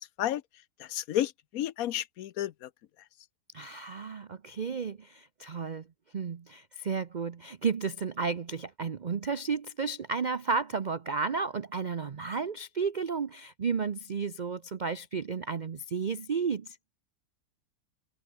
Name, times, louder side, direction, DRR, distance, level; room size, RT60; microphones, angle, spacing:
voice 1, 0.8-2.7, left 12 dB, 65° left, 1.0 m, -31 dB
voice 2, 3.5-5.8 6.1-16.8, right 5 dB, 65° right, 0.4 m, -32 dB
omnidirectional pair, 1.9 m